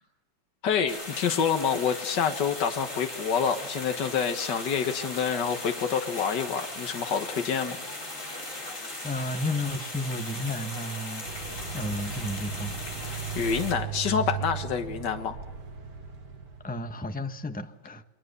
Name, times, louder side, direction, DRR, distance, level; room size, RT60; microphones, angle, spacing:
voice 1, 0.6-7.8 8.3-8.7 13.0-15.4, left 7 dB, 75° left, 6 dB, 2.0 m, -28 dB
sound 1, 0.9-13.7, left 1 dB, 45° left, 5.3 m, -38 dB
voice 2, 8.8-12.8 16.6-18.0, left 1 dB, 5° left, 8 dB, 1.0 m, -33 dB
sound 2, 11.3-16.8, right 7 dB, 70° right, 2.5 m, -37 dB
28.5 x 23.0 x 6.8 m, 1.0 s
omnidirectional pair, 1.9 m